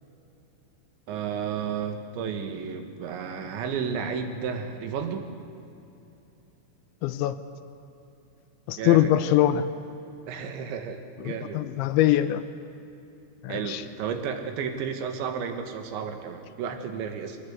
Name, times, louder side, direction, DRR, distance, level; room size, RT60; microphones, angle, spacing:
voice 1, 1.1-5.3 8.8-9.1 10.3-11.6 13.5-17.4, right 6 dB, 75° right, 6 dB, 3.8 m, -32 dB
voice 2, 7.0-7.4 8.7-9.6 11.2-12.4 13.4-13.8, left 13 dB, 80° left, 11 dB, 3.1 m, -22 dB
23.0 x 19.0 x 8.0 m, 2.8 s
omnidirectional pair, 5.3 m